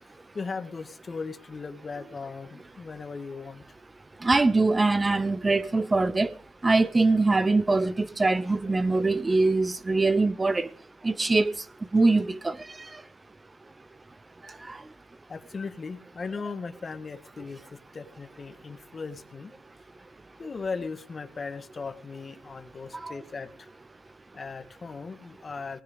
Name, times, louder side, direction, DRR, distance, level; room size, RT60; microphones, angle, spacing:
voice 1, 0.0-3.6 15.3-19.5 20.4-23.7 24.3-25.8, left 4 dB, 35° left, 1.6 m, -38 dB
voice 2, 4.2-6.3 6.6-10.7 11.0-11.5 11.9-12.6 14.7-14.8 23.0-23.1, right 3 dB, 20° right, 0.9 m, -23 dB
19.0 x 10.0 x 5.0 m
cardioid pair, 90°, 0 cm